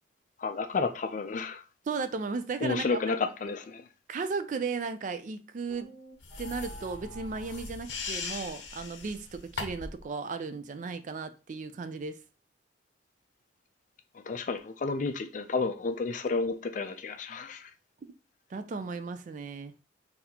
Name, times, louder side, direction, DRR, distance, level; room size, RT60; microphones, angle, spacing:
voice 1, 0.4-1.6 2.6-3.8 14.3-17.7, left 4 dB, 45° left, 0.4 m, -31 dB
voice 2, 1.9-3.0 4.1-5.9 6.4-12.2 18.5-19.7, right 4 dB, 40° right, 0.3 m, -35 dB
sound 1, 5.7-7.8, equal, 20° right, 1.7 m, -46 dB
sound 2, 6.2-10.0, left 4 dB, 75° left, 0.8 m, -40 dB
4.0 x 2.7 x 2.8 m
head